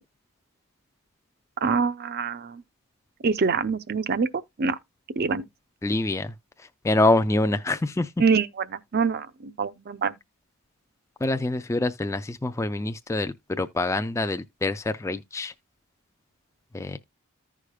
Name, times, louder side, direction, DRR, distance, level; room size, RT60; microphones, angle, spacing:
voice 1, 1.6-2.6 3.2-4.8 5.2-5.5 8.2-10.1, right 5 dB, 45° right, 0.5 m, -25 dB
voice 2, 5.8-6.3 6.8-8.1 11.2-15.5 16.7-17.0, left 2 dB, 15° left, 0.3 m, -25 dB
14.5 x 4.9 x 2.2 m
head